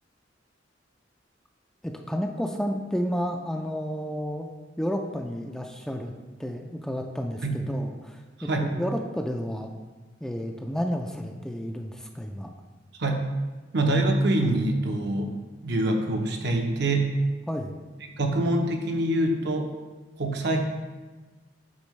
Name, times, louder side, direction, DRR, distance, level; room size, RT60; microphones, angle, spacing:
voice 1, 1.8-4.5 4.8-6.1 6.4-9.7 10.2-12.5 17.5-17.7, equal, 5° left, 3 dB, 0.3 m, -31 dB
voice 2, 8.4-8.7 13.0-13.2 13.7-15.3 15.6-17.2 18.2-19.7 20.2-20.6, right 1 dB, 65° right, 3 dB, 0.8 m, -25 dB
8.5 x 4.3 x 3.1 m, 1.3 s
head